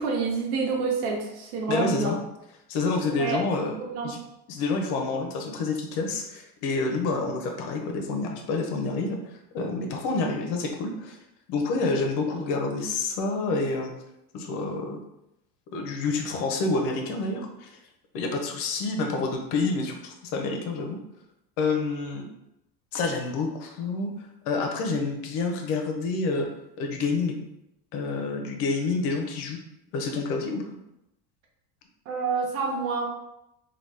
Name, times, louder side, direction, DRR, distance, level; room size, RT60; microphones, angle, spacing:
voice 1, 0.0-2.1 3.1-3.4 3.8-4.2 32.1-33.1, right 4 dB, 85° right, -1 dB, 0.9 m, -28 dB
voice 2, 1.7-2.1 2.7-3.8 4.0-4.2 4.5-9.2 9.5-11.2 11.5-13.9 14.3-15.0 15.7-17.7 18.1-21.0 21.6-22.2 22.9-24.1 24.4-26.5 26.8-27.4 27.9-29.6 29.9-30.8, left 3 dB, 70° left, 3 dB, 0.8 m, -28 dB
2.9 x 2.3 x 3.3 m, 0.87 s
supercardioid pair, 120°, 43 cm